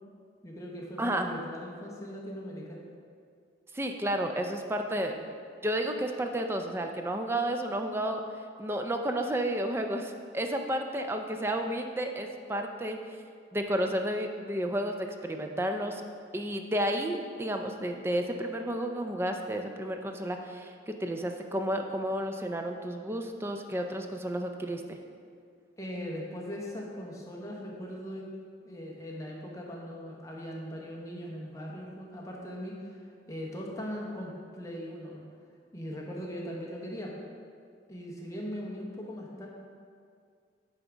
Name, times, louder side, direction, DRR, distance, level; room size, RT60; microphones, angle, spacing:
voice 1, 0.4-2.8 25.8-28.2 28.6-33.0 33.3-35.2 35.7-37.2 37.9-39.5, equal, 20° left, -2 dB, 0.9 m, -39 dB
voice 2, 1.0-1.3 3.7-5.4 5.6-8.2 8.6-13.0 13.5-16.0 16.3-25.0, right 1 dB, 15° right, 4 dB, 0.4 m, -31 dB
9.1 x 3.5 x 5.0 m, 2.2 s
head